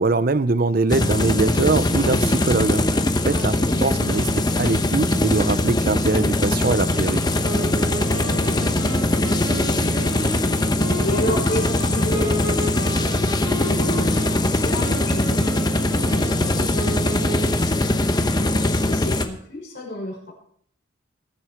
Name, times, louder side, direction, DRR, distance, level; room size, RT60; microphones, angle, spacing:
voice 1, 0.0-7.2, right 3 dB, 45° right, 14 dB, 0.6 m, -22 dB
sound 1, 0.9-19.3, left 1 dB, 20° left, 0.9 m, -21 dB
voice 2, 3.2-3.9 7.9-20.3, left 1 dB, 60° left, -3 dB, 5.8 m, -33 dB
sound 2, 7.4-17.8, right 2 dB, 80° right, 4.1 m, -32 dB
21.5 x 7.6 x 5.1 m, 0.63 s
head